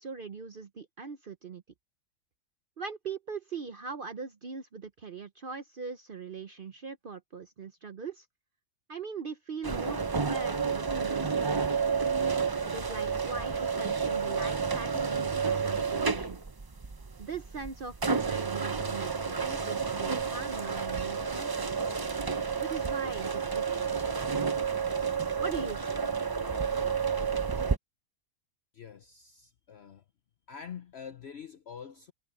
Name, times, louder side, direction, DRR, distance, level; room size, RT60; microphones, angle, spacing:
voice 1, 0.0-1.6 2.8-8.3 8.9-10.0 10.3-11.9 12.6-16.4 17.2-19.1 19.4-21.8 22.6-24.1 25.4-26.0, right 5 dB, 45° right, 0.9 m, -41 dB
sound 1, 9.6-27.8, right 5 dB, 30° right, 0.4 m, -30 dB
voice 2, 28.7-30.0 30.5-32.1, left 7 dB, 55° left, 1.0 m, -45 dB
omnidirectional pair, 1.4 m